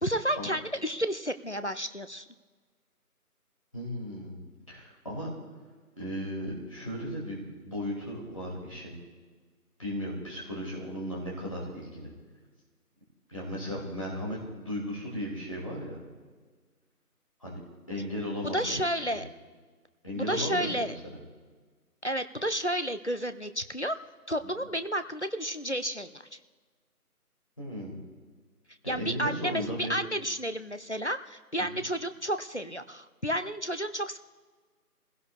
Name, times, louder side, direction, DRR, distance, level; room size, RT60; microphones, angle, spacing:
voice 1, 0.0-2.3 18.4-19.3 20.1-21.0 22.0-24.0 24.3-26.4 28.9-29.6 29.9-34.2, equal, 50° left, 10 dB, 0.5 m, -31 dB
voice 2, 3.7-4.4 4.7-5.3 6.0-9.0 9.8-12.1 13.3-16.0 17.4-17.6 17.9-19.2 20.0-20.9 24.4-24.5 27.6-28.0 28.8-29.9 31.6-31.7, equal, 20° left, -4 dB, 2.1 m, -36 dB
28.0 x 16.0 x 2.2 m, 1.5 s
figure-of-eight pair, 170°, 46 cm